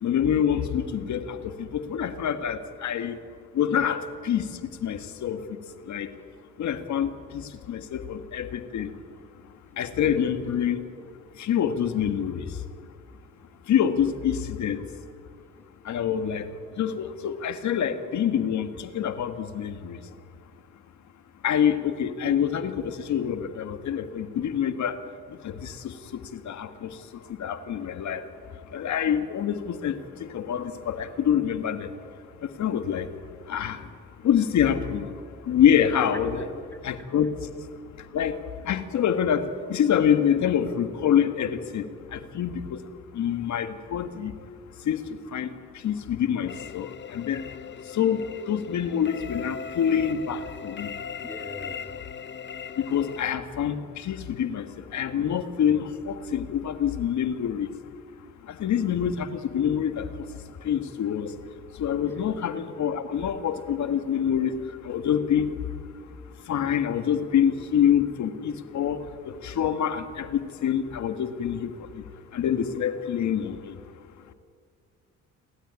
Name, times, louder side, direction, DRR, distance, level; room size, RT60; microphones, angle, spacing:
voice 1, 0.0-3.2 3.5-4.4 4.8-5.4 5.9-6.1 6.6-8.9 9.8-10.8 11.4-12.4 13.7-14.8 15.8-16.5 16.8-20.0 21.4-25.0 25.4-25.9 26.3-26.9 27.4-28.2 28.7-30.0 30.3-31.9 32.6-33.1 33.5-33.8 34.2-35.1 35.5-36.4 36.8-37.3 38.1-38.4 38.6-41.9 42.1-42.8 43.1-44.3 44.8-45.0 45.3-45.5 45.8-47.4 47.9-50.9 52.8-54.6 54.9-57.7 58.6-60.1 60.6-61.3 61.8-65.5 66.5-69.0 69.3-72.0 72.3-73.7, left 9 dB, 70° left, 9 dB, 1.7 m, -26 dB
voice 2, 36.4-37.1 51.2-51.9 62.1-62.4, equal, 5° left, 6 dB, 2.2 m, -43 dB
sound 1, 46.5-53.3, left 6 dB, 40° left, 0.8 m, -39 dB
29.0 x 12.5 x 9.5 m, 2.3 s
cardioid pair, 90°, 30 cm